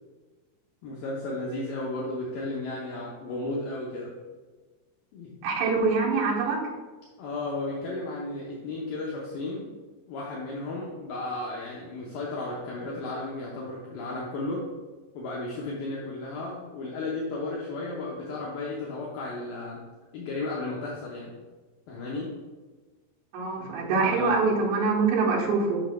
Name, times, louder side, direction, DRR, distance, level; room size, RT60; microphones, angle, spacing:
voice 1, 0.8-4.1 5.1-5.3 7.2-9.7 10.1-14.7 15.1-19.8 20.1-21.3 21.9-22.4 23.6-23.7 24.0-24.3, left 2 dB, 80° left, -4 dB, 2.1 m, -34 dB
voice 2, 5.4-6.6 23.3-25.8, right 4 dB, 75° right, -4 dB, 3.3 m, -24 dB
8.1 x 6.1 x 2.2 m, 1.3 s
omnidirectional pair, 5.1 m